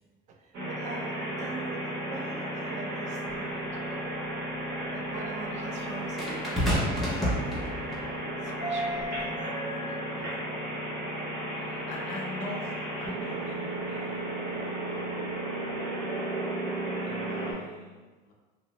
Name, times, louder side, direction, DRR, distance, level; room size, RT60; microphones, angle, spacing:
voice 1, 0.3-4.0 4.9-7.5 8.4-10.4, right 5 dB, 40° right, 2 dB, 0.4 m, -44 dB
sound 1, 0.5-17.5, right 1 dB, 60° right, 0.8 m, -34 dB
sound 2, 3.3-3.4 6.2-8.1 9.0-9.2, equal, ahead, 0.6 m, -29 dB
voice 2, 11.6-15.9 17.0-18.3, left 2 dB, 50° left, -2 dB, 0.5 m, -44 dB
2.6 x 2.1 x 2.9 m, 1.3 s
cardioid pair, 140°, 19 cm